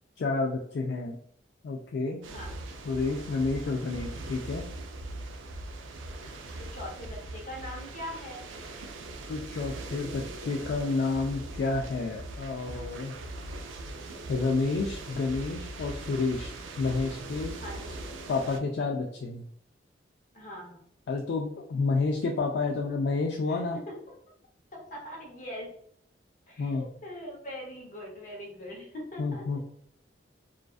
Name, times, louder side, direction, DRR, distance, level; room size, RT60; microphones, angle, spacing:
voice 1, 0.2-1.2 1.6-2.2 2.8-4.7 9.3-13.2 14.3-17.6 18.3-19.5 21.1-23.8 26.6-26.8 29.2-29.6, left 3 dB, 60° left, 0 dB, 0.3 m, -30 dB
sound 1, 2.2-18.6, right 2 dB, 90° right, 0.4 m, -40 dB
voice 2, 6.6-8.5 17.5-18.0 20.3-20.8 23.5-24.0 24.7-25.7 26.5-29.6, left 1 dB, 40° left, -2 dB, 0.8 m, -42 dB
2.4 x 2.3 x 2.3 m, 0.69 s
head